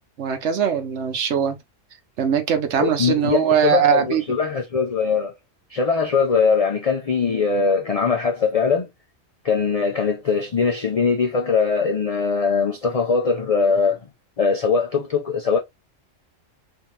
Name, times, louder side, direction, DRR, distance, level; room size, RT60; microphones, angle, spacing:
voice 1, 0.2-1.6 2.2-4.2, right 8 dB, 65° right, 1.0 m, -21 dB
voice 2, 2.8-5.3 5.7-8.9 9.4-14.0 14.4-15.6, left 5 dB, 60° left, 0.3 m, -21 dB
3.5 x 2.8 x 3.1 m
omnidirectional pair, 1.3 m